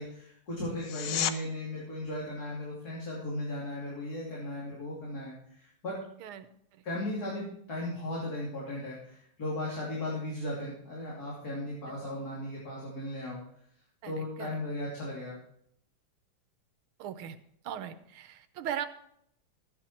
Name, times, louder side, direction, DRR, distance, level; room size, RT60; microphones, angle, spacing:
voice 1, 0.0-5.9 6.8-13.4 14.0-15.4, left 1 dB, 45° left, -5 dB, 3.4 m, -36 dB
sound 1, 0.8-1.4 12.7-12.8, left 10 dB, 70° left, 1.1 m, -31 dB
voice 2, 14.0-14.6 17.0-17.4 17.6-18.9, right 9 dB, 85° right, 11 dB, 1.7 m, -38 dB
13.0 x 10.0 x 4.5 m, 0.71 s
omnidirectional pair, 2.3 m